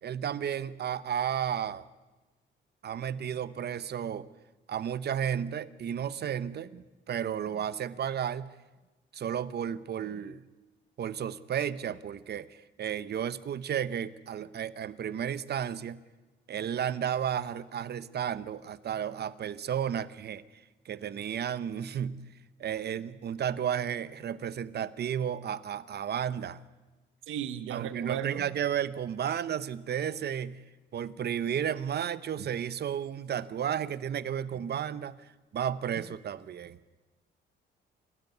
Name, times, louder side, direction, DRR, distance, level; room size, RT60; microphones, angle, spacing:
voice 1, 0.0-1.8 2.8-4.3 4.7-8.4 9.1-10.4 11.0-12.5 12.8-16.0 16.5-20.4 20.8-22.2 22.6-26.6 27.7-30.6 30.9-35.2 35.5-36.8, right 9 dB, 55° right, 16 dB, 1.0 m, -33 dB
voice 2, 27.3-28.4 32.4-32.5 34.5-34.6, right 10 dB, 85° right, 12 dB, 1.4 m, -36 dB
27.0 x 13.0 x 9.4 m, 1.2 s
cardioid pair, 90°, 20 cm